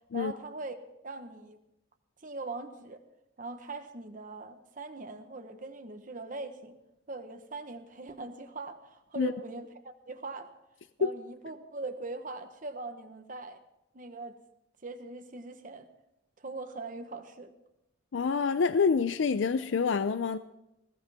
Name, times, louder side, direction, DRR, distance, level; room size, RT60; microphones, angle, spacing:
voice 1, 0.1-0.7 1.0-1.6 2.2-3.0 3.4-6.8 7.1-10.5 11.0-13.6 13.9-14.4 14.8-15.9 16.4-17.5, right 3 dB, 45° right, 1.1 m, -41 dB
voice 2, 18.1-20.4, left 5 dB, 75° left, 0.5 m, -27 dB
20.5 x 15.5 x 3.5 m
head